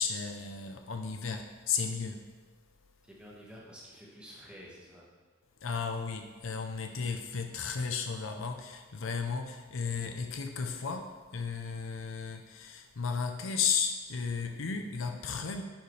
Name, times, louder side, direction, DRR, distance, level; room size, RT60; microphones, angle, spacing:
voice 1, 0.0-2.4 5.6-15.6, left 5 dB, 70° left, 5 dB, 0.6 m, -34 dB
voice 2, 3.0-5.1, equal, 5° right, -5 dB, 1.6 m, -50 dB
10.5 x 5.5 x 3.3 m, 1.4 s
head